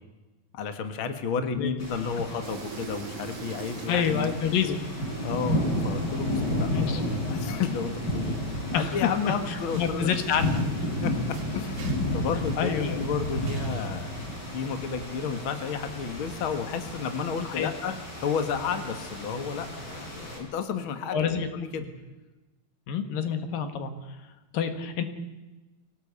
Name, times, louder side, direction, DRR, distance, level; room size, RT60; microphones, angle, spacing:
voice 1, 0.5-4.3 5.2-5.6 5.8-8.4 8.7-10.1 11.0-17.9 18.2-21.9, left 6 dB, 45° left, 8 dB, 2.2 m, -32 dB
voice 2, 1.4-1.7 3.9-4.8 6.7-7.0 8.7-9.1 9.5-10.6 12.6-13.0 17.4-17.9 21.1-21.5 22.9-24.2 24.5-25.0, left 7 dB, 80° left, 8 dB, 3.4 m, -28 dB
sound 1, 1.8-20.4, left 1 dB, 30° left, 5.6 m, -32 dB
sound 2, 2.4-15.3, right 6 dB, 65° right, 3.3 m, -47 dB
23.5 x 18.0 x 8.4 m, 1.1 s
omnidirectional pair, 4.0 m